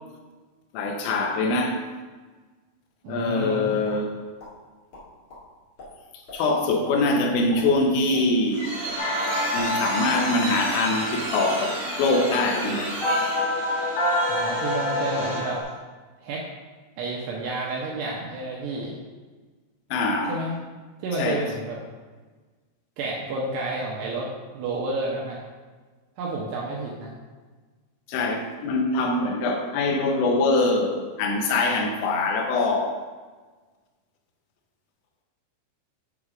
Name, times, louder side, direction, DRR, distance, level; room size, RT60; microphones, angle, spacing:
voice 1, 0.7-1.8 3.1-4.2 6.3-8.7 9.5-12.9 19.9-20.4 21.2-21.4 28.1-33.0, left 2 dB, 80° left, 2 dB, 3.5 m, -23 dB
voice 2, 3.0-3.8 14.3-15.6 16.2-16.4 17.0-19.0 20.3-20.5 21.0-21.8 23.0-25.4 26.2-27.1, right 2 dB, 75° right, -3 dB, 2.6 m, -30 dB
sound 1, 3.4-4.0 4.4-4.5 4.9-5.4 5.8-5.9 6.3-6.4 6.8-7.0 7.3-8.6 8.8-9.0 9.4-9.7, left 2 dB, 45° left, 2.0 m, -44 dB
sound 2, 8.1-15.7, right 1 dB, 40° right, 1.9 m, -33 dB
sound 3, 9.0-15.6, left 1 dB, 65° left, 1.8 m, -28 dB
8.6 x 4.2 x 4.9 m, 1.4 s
omnidirectional pair, 5.8 m